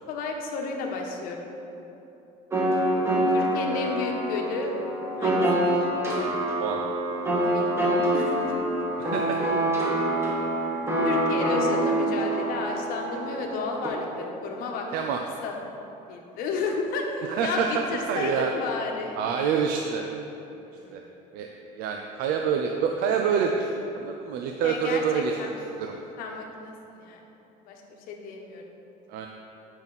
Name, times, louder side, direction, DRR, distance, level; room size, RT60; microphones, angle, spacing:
voice 1, 0.1-1.5 3.3-4.7 5.2-5.8 7.5-8.6 11.0-14.9 15.4-15.6 16.1-19.2 20.7-21.0 24.6-25.6 26.2-27.2 27.6-27.8 28.1-28.6, left 4 dB, 65° left, 1 dB, 1.1 m, -32 dB
sound 1, 2.5-13.9, right 1 dB, 15° right, 1.5 m, -26 dB
voice 2, 9.0-9.4 14.9-15.2 17.3-18.5 19.2-20.0 20.9-21.0 21.3-21.5 21.8-25.4 25.8-25.9 29.1-29.3, right 6 dB, 75° right, 3 dB, 0.5 m, -27 dB
8.8 x 5.9 x 4.1 m, 3.0 s
cardioid pair, 135°, 16 cm